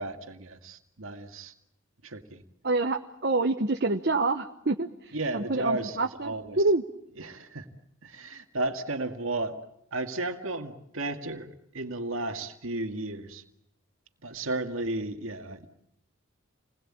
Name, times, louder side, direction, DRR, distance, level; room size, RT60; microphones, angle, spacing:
voice 1, 0.0-1.5 2.0-2.4 5.1-6.6 7.2-7.7 8.0-9.6 9.9-11.5 11.7-13.4 14.2-15.7, right 2 dB, 80° right, 5 dB, 2.0 m, -33 dB
voice 2, 2.6-6.8, right 3 dB, 50° right, 5 dB, 1.0 m, -27 dB
29.0 x 21.0 x 8.7 m, 0.80 s
head